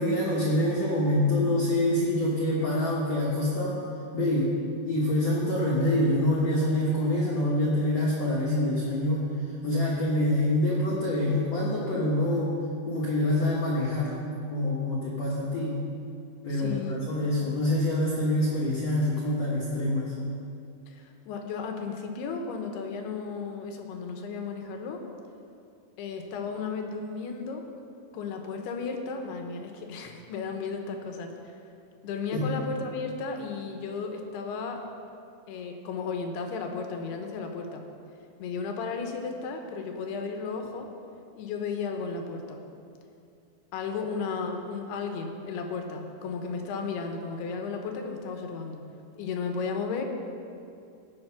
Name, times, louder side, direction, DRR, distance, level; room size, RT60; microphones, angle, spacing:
voice 1, 0.0-3.8 4.1-9.3 9.6-12.6 12.9-14.2 14.5-15.8 16.4-20.1 32.3-32.5, left 1 dB, 55° left, -6 dB, 2.1 m, -26 dB
voice 2, 16.5-17.0 20.9-25.0 26.0-27.7 28.1-31.6 32.0-34.8 35.5-37.9 38.4-40.9 41.4-42.6 43.7-48.8 49.2-50.0, left 5 dB, 80° left, 4 dB, 3.0 m, -34 dB
17.0 x 6.4 x 5.8 m, 2.5 s
omnidirectional pair, 4.6 m